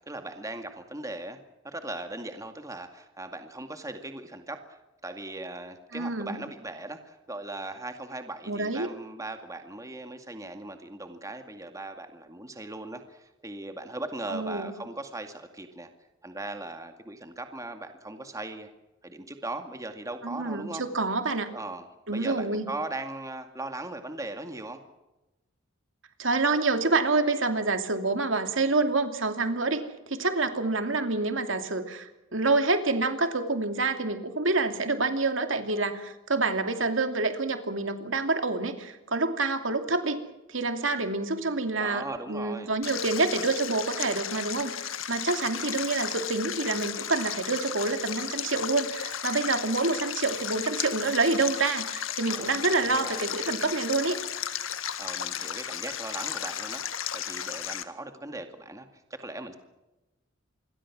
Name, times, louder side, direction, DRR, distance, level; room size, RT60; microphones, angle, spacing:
voice 1, 0.0-1.4 1.6-15.9 16.2-18.7 19.0-20.8 21.5-24.8 41.8-42.7 52.3-53.4 55.0-59.6, right 2 dB, 15° right, 6 dB, 2.2 m, -39 dB
voice 2, 5.9-6.4 8.5-8.9 14.3-14.7 20.2-21.5 22.1-22.7 26.2-40.2 40.5-54.2, right 3 dB, 70° right, 7 dB, 2.7 m, -27 dB
Stream, 42.8-57.8, left 9 dB, 90° left, 1.8 m, -34 dB
27.0 x 22.0 x 6.2 m, 1.0 s
head